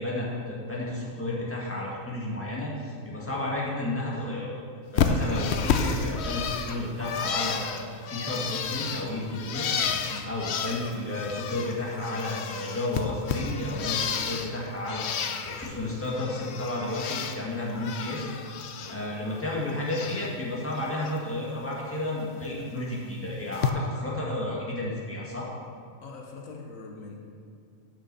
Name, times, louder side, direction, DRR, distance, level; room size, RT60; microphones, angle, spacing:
voice 1, 0.0-4.5 4.9-9.7 9.9-18.2 18.9-25.5, left 1 dB, 10° left, -5 dB, 1.9 m, -32 dB
Bird, 5.0-11.8 12.0-14.5 14.9-15.7 16.0-17.4 17.7-18.9 19.3-20.3 20.7-21.1 22.4-22.5 23.5-23.7, left 6 dB, 60° left, 0.8 m, -31 dB
voice 2, 18.8-19.1 26.0-27.2, left 3 dB, 75° left, 1 dB, 1.3 m, -43 dB
8.7 x 6.2 x 6.8 m, 2.3 s
omnidirectional pair, 1.4 m